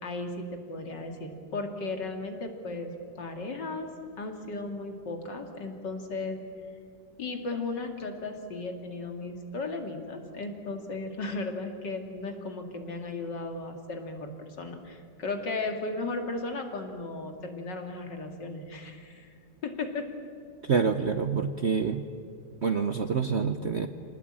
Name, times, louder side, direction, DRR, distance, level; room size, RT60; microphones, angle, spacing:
voice 1, 0.0-3.9 4.2-6.4 7.2-19.3 19.6-20.0, left 3 dB, 65° left, 4 dB, 3.0 m, -35 dB
voice 2, 20.6-22.0 22.6-23.9, right 5 dB, 55° right, 8 dB, 0.8 m, -27 dB
27.5 x 19.0 x 8.9 m, 2.4 s
omnidirectional pair, 2.1 m